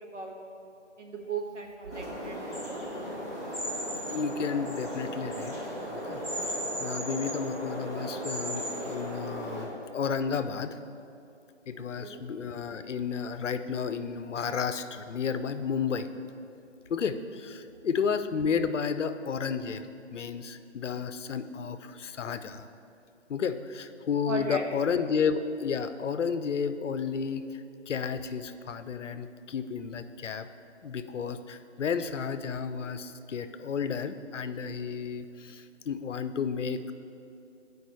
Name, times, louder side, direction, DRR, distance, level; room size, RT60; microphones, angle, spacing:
voice 1, 1.0-2.8 12.0-12.2 17.7-17.8 24.3-24.6, right 4 dB, 80° right, 1 dB, 1.3 m, -37 dB
sound 1, 1.9-9.6, equal, 15° right, 0.7 m, -35 dB
voice 2, 4.1-5.5 5.9-10.8 11.7-16.1 16.9-19.8 20.1-22.7 23.3-30.5 30.8-36.9, left 6 dB, 85° left, 11 dB, 0.5 m, -32 dB
9.3 x 4.9 x 3.1 m, 2.6 s
figure-of-eight pair, 160°, 36 cm